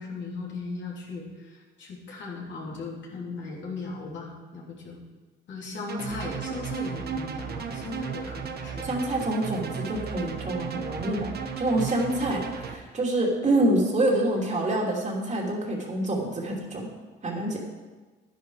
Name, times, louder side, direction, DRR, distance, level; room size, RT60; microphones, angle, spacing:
voice 1, 0.0-5.0 5.5-8.9, left 3 dB, 65° left, -2 dB, 3.2 m, -37 dB
sound 1, 5.9-12.8, right 6 dB, 55° right, 1.1 m, -34 dB
voice 2, 8.8-16.9 17.2-17.6, right 1 dB, 35° right, -1 dB, 2.9 m, -26 dB
11.0 x 10.5 x 4.9 m, 1.3 s
cardioid pair, 90°, 20 cm